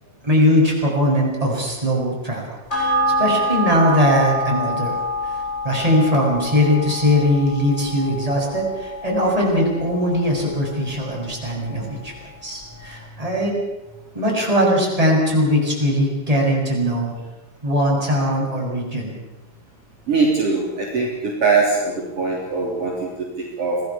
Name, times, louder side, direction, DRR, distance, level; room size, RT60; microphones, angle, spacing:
voice 1, 0.2-2.4 2.7-2.9 3.2-4.9 5.6-12.1 12.4-13.6 14.1-17.1 17.6-19.2, equal, 10° right, -2 dB, 6.6 m, -20 dB
sound 1, 2.7-11.5 11.8-11.9, equal, 15° left, 7.8 m, -26 dB
voice 2, 20.1-23.8, right 4 dB, 45° right, -3 dB, 4.3 m, -21 dB
26.0 x 18.0 x 7.2 m, 1.0 s
omnidirectional pair, 3.9 m